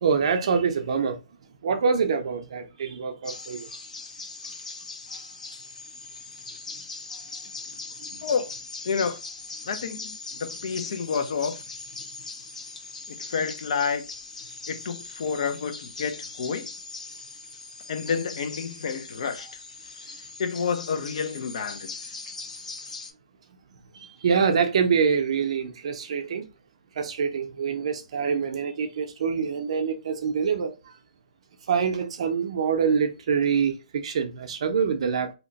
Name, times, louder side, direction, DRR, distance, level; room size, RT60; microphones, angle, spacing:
voice 1, 0.0-1.2 1.6-3.7 8.1-8.2 24.0-26.5 27.0-30.7 31.7-35.3, right 6 dB, 50° right, 0.6 m, -25 dB
sound 1, 3.2-23.1, left 3 dB, 90° left, 1.1 m, -40 dB
voice 2, 8.2-8.5 8.8-9.2 9.7-11.6 13.1-14.0 14.7-16.7 17.9-19.6 20.4-22.1, left 6 dB, 55° left, 0.6 m, -29 dB
2.8 x 2.1 x 3.9 m
hypercardioid pair, 160°, 4 cm